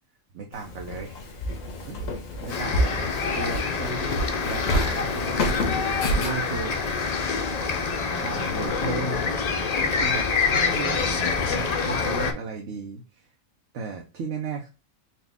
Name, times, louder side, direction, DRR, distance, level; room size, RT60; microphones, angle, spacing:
voice 1, 0.3-1.3 1.8-2.1 2.4-5.4 6.2-6.8 8.2-13.3 13.7-14.7, right 4 dB, 65° right, 0 dB, 1.0 m, -35 dB
Walk footsteps, 0.5-8.7, left 1 dB, 70° left, 1.3 m, -31 dB
sound 1, 2.5-12.3, left 5 dB, 85° left, 0.3 m, -26 dB
4.3 x 2.4 x 3.3 m, 0.30 s
omnidirectional pair, 1.4 m